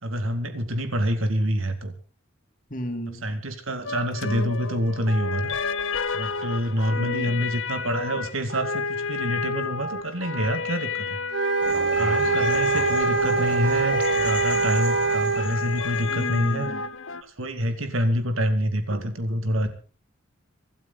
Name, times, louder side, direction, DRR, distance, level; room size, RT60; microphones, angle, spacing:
voice 1, 0.0-1.9 3.2-5.5 6.1-11.2 12.0-16.7 17.2-19.7, equal, 80° right, 8 dB, 2.2 m, -27 dB
voice 2, 2.7-3.2 6.9-7.3 16.1-16.8, equal, 40° left, 4 dB, 2.7 m, -34 dB
sound 1, 3.8-17.2, left 5 dB, 70° left, 1.1 m, -31 dB
sound 2, 11.3-15.5, right 4 dB, 60° right, 1.4 m, -23 dB
sound 3, 11.6-16.7, right 1 dB, 5° right, 5.7 m, -38 dB
24.5 x 12.5 x 4.0 m, 0.38 s
head